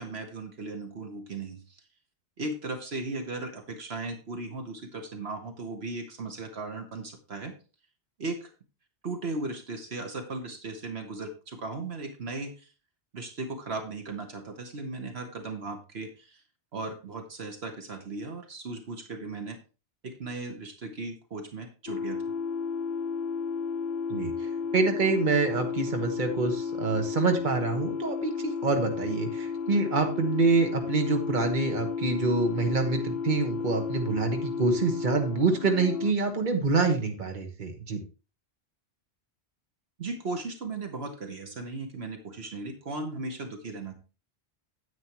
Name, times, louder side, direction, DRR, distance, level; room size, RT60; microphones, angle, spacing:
voice 1, 0.0-1.8 2.4-7.6 8.2-8.5 9.0-12.7 13.1-16.4 16.7-19.6 20.0-22.2 40.0-43.9, right 3 dB, 70° right, 5 dB, 1.5 m, -37 dB
sound 1, 21.9-36.1, left 6 dB, 60° left, 0.7 m, -33 dB
voice 2, 24.1-38.0, right 4 dB, 45° right, 4 dB, 1.5 m, -26 dB
9.6 x 8.7 x 3.0 m, 0.32 s
omnidirectional pair, 1.1 m